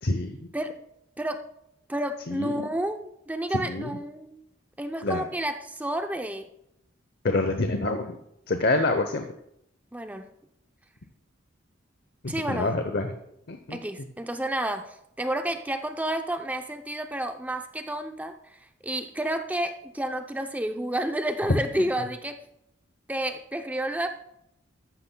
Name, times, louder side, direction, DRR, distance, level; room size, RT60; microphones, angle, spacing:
voice 1, 0.0-0.5 2.3-2.7 3.5-3.9 5.0-5.3 7.2-8.2 8.5-9.3 12.2-13.1 13.5-13.8, left 2 dB, 55° left, 6 dB, 0.8 m, -27 dB
voice 2, 1.9-4.4 4.8-6.5 9.9-10.3 12.3-12.7 13.7-18.3 18.8-22.4 23.1-24.1, right 1 dB, 10° right, 6 dB, 0.6 m, -30 dB
13.5 x 12.0 x 2.3 m, 0.78 s
head